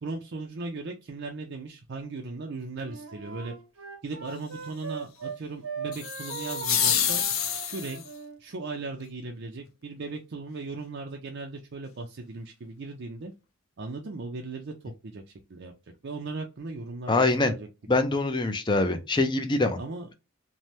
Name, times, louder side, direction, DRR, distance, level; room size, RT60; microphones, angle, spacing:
voice 1, 0.0-3.5 4.0-7.2 7.7-8.0 8.4-13.3 13.8-15.2 15.5-17.7 19.8-20.1, right 3 dB, 55° right, 0.5 m, -37 dB
Wind instrument woodwind instrument, 2.8-5.4 5.6-8.4, right 5 dB, 80° right, 0.9 m, -39 dB
sound 1, 5.9-8.1, left 8 dB, 75° left, 0.6 m, -27 dB
voice 2, 17.1-17.5 17.9-19.8, left 2 dB, 20° left, 0.5 m, -24 dB
3.2 x 2.2 x 2.7 m
head